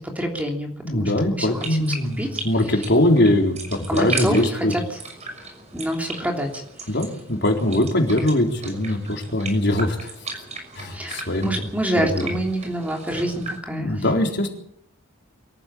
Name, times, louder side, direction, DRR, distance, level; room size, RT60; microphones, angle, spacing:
voice 1, 0.1-1.9 2.2-2.4 3.9-5.0 5.7-6.5 10.9-14.0, right 1 dB, 5° right, 1 dB, 3.2 m, -27 dB
voice 2, 0.8-4.7 6.9-10.1 10.8-11.5 12.0-12.3 13.7-14.5, left 1 dB, 55° left, 2 dB, 4.0 m, -21 dB
sound 1, 1.4-13.6, right 3 dB, 30° right, 6.0 m, -36 dB
23.5 x 14.5 x 8.7 m, 0.68 s
head